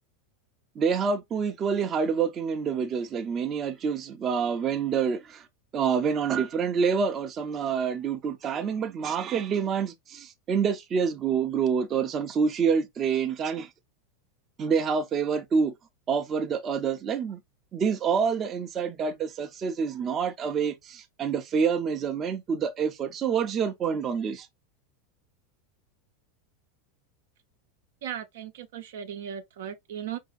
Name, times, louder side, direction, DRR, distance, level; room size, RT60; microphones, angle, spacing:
voice 1, 0.8-5.5 5.7-13.7 14.6-15.7 16.1-17.4 17.7-24.5, right 6 dB, 30° right, 0.6 m, -27 dB
voice 2, 28.0-30.2, right 9 dB, 75° right, 0.7 m, -37 dB
4.8 x 2.8 x 2.5 m
hypercardioid pair, 115°, 0 cm